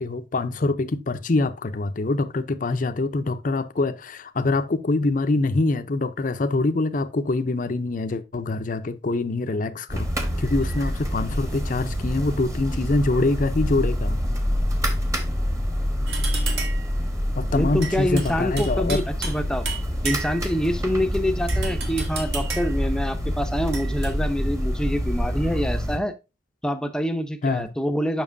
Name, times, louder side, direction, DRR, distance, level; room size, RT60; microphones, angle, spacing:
voice 1, 0.0-10.1 10.4-14.2 17.4-19.0 27.4-27.7, left 2 dB, 45° left, 0.6 m, -24 dB
sound 1, 9.9-26.0, equal, 15° right, 1.1 m, -26 dB
sound 2, 16.1-16.9 17.8-19.4 19.7-20.5 21.5-22.8 23.7-24.1, right 5 dB, 65° right, 1.6 m, -33 dB
voice 2, 17.5-19.6 20.0-26.1 26.6-28.2, equal, 5° left, 0.6 m, -26 dB
7.2 x 5.9 x 2.6 m
head